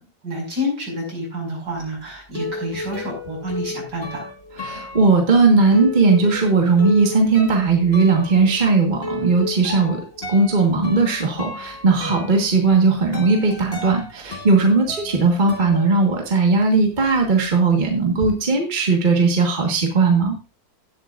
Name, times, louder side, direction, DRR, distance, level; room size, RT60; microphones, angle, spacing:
voice 1, 0.2-4.3, left 1 dB, 60° right, -2 dB, 6.3 m, -28 dB
sound 1, 1.8-16.6 16.9-18.3, left 3 dB, 35° left, 1.9 m, -34 dB
voice 2, 4.6-10.0 10.3-20.4, right 4 dB, 25° right, 2 dB, 1.5 m, -18 dB
17.0 x 8.0 x 2.5 m, 0.30 s
omnidirectional pair, 2.0 m